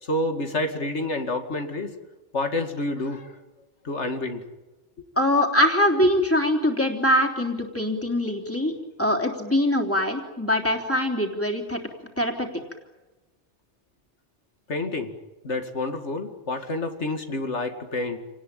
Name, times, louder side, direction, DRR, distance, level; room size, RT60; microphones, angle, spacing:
voice 1, 0.0-2.0 2.3-3.4 3.8-4.4 14.7-15.1 15.4-18.2, left 2 dB, 80° left, 6 dB, 2.5 m, -28 dB
voice 2, 5.2-8.7 9.0-11.8 12.2-12.5, left 1 dB, 10° left, 2 dB, 3.5 m, -23 dB
28.5 x 19.5 x 9.2 m, 1.1 s
omnidirectional pair, 1.2 m